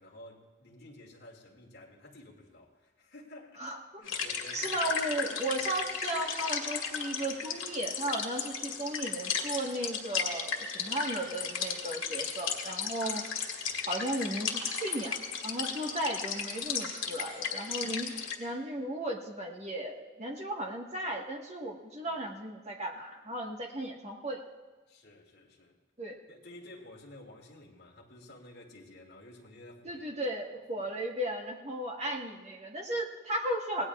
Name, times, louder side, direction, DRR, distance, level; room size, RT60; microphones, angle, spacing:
voice 1, 0.0-4.9 13.6-13.9 24.9-25.7 26.3-30.2 30.7-30.9, left 1 dB, 55° left, -2 dB, 2.3 m, -52 dB
voice 2, 3.6-4.0 4.5-24.4 26.0-26.2 29.8-33.8, right 1 dB, 35° right, 0 dB, 1.4 m, -35 dB
sound 1, 4.1-18.3, left 6 dB, 80° left, 2.0 m, -35 dB
26.0 x 18.5 x 2.4 m, 1.3 s
head